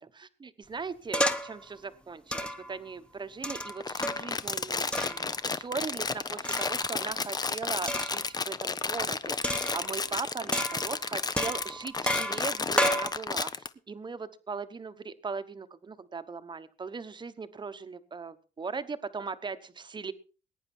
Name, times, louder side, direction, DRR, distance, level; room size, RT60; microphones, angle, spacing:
voice 1, 0.0-20.1, right 4 dB, 25° right, 12 dB, 1.1 m, -39 dB
sound 1, 1.1-1.6 2.3-2.8 3.4-4.4 4.9-5.3 6.4-6.9 7.9-8.3 9.4-10.1 10.5-11.0 11.4-13.1, equal, 5° left, 1.2 m, -31 dB
Crumpling crinkling, 3.6-13.7, left 4 dB, 20° left, 0.7 m, -32 dB
20.5 x 9.7 x 4.4 m, 0.36 s
cardioid pair, 125°, 18 cm